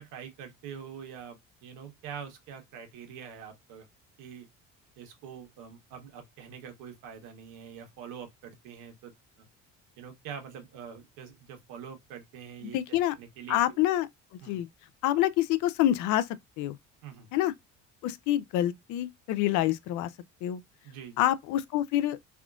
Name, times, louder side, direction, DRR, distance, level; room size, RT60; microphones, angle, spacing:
voice 1, 0.0-3.9 4.2-4.5 5.0-9.5 10.0-13.8 14.4-14.6 17.0-17.3 20.8-21.2, right 7 dB, 80° right, 1.2 m, -45 dB
voice 2, 12.7-13.1 13.5-14.1 14.5-14.7 15.0-16.3 16.6-16.8 17.3-17.5 18.0-20.1 20.4-20.6 21.2-22.2, left 13 dB, 70° left, 0.4 m, -26 dB
3.5 x 2.4 x 2.4 m
cardioid pair, 140°, 31 cm